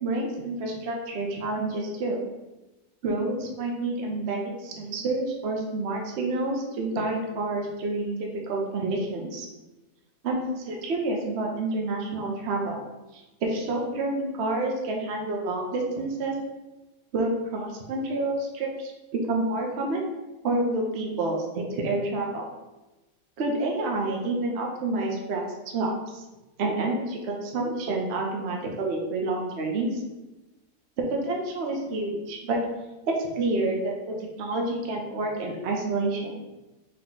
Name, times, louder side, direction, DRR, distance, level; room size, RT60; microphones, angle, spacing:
voice 1, 0.0-2.2 3.0-9.5 10.2-12.9 13.1-16.4 17.1-20.0 20.4-22.5 23.4-25.4 25.7-26.2 26.6-30.0 31.0-32.6 33.1-36.3, right 2 dB, 55° right, 0 dB, 0.8 m, -28 dB
3.7 x 2.9 x 3.7 m, 1.1 s
omnidirectional pair, 1.5 m